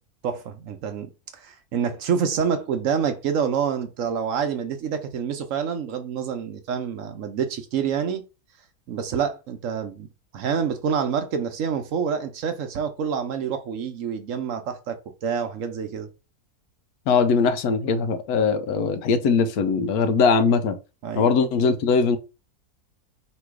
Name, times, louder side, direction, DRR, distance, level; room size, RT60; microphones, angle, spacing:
voice 1, 0.2-8.2 8.9-10.1 10.3-16.1 21.0-21.3, right 7 dB, 65° right, 0.9 m, -27 dB
voice 2, 17.1-20.8 21.2-22.2, left 5 dB, 85° left, 1.1 m, -21 dB
3.1 x 3.0 x 4.6 m
omnidirectional pair, 1.6 m